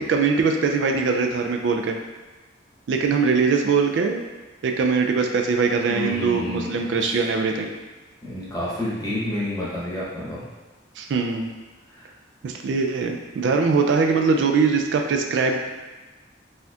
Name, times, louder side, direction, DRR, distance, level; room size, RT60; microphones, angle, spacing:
voice 1, 0.0-2.0 2.9-4.2 4.6-7.7 11.0-11.5 12.4-15.6, right 4 dB, 70° right, 4 dB, 0.3 m, -22 dB
voice 2, 5.9-6.9 8.2-10.4 11.9-12.1, left 1 dB, 20° left, -7 dB, 0.9 m, -29 dB
4.1 x 2.7 x 2.4 m, 1.2 s
head